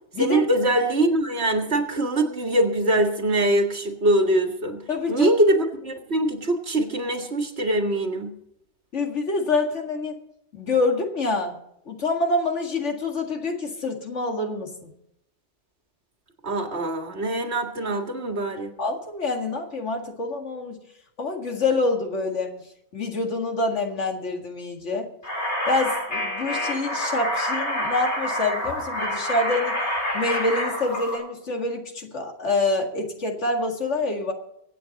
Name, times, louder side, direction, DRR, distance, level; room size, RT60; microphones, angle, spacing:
voice 1, 0.2-4.8 5.1-8.3 16.4-18.7, right 1 dB, 65° right, 4 dB, 2.0 m, -23 dB
voice 2, 4.9-5.3 8.9-10.2 10.5-11.6 11.9-14.9 18.8-20.8 21.2-22.5 22.9-25.1 25.7-29.8 30.1-34.3, left 2 dB, 90° left, 3 dB, 2.3 m, -26 dB
sound 1, 25.2-31.2, left 1 dB, 70° left, 4.2 m, -27 dB
24.0 x 8.5 x 4.0 m, 0.80 s
omnidirectional pair, 1.2 m